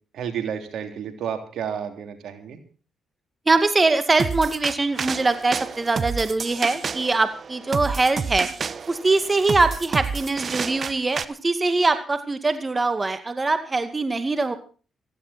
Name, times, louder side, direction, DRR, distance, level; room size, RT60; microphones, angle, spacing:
voice 1, 0.1-2.6, right 8 dB, 75° right, 7 dB, 3.4 m, -31 dB
voice 2, 3.5-8.5 8.9-14.6, right 3 dB, 25° right, 10 dB, 2.2 m, -22 dB
sound 1, 4.2-11.2, right 5 dB, 50° right, 1.2 m, -30 dB
17.5 x 15.5 x 4.4 m, 0.38 s
cardioid pair, 70°, 0 cm